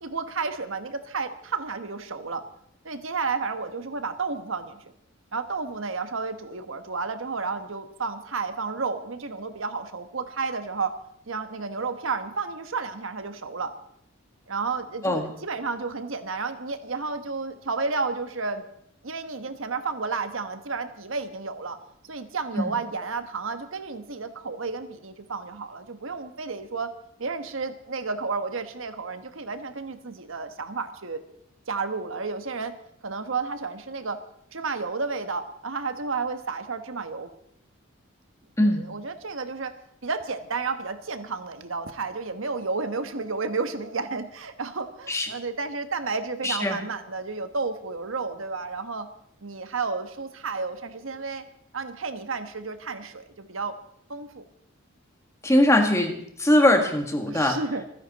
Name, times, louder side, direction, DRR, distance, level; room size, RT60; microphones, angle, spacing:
voice 1, 0.0-2.4 2.8-4.8 5.3-10.9 11.3-13.7 14.5-18.6 19.0-21.8 22.0-26.9 27.2-31.2 31.7-32.8 33.0-34.2 34.5-37.3 38.6-39.7 40.0-49.1 49.4-51.4 51.7-53.8 54.1-54.4 57.3-57.8, right 4 dB, 75° right, 9 dB, 1.2 m, -31 dB
voice 2, 46.4-46.8 55.4-57.6, left 1 dB, 15° left, 4 dB, 1.7 m, -21 dB
26.0 x 10.0 x 4.1 m, 0.72 s
head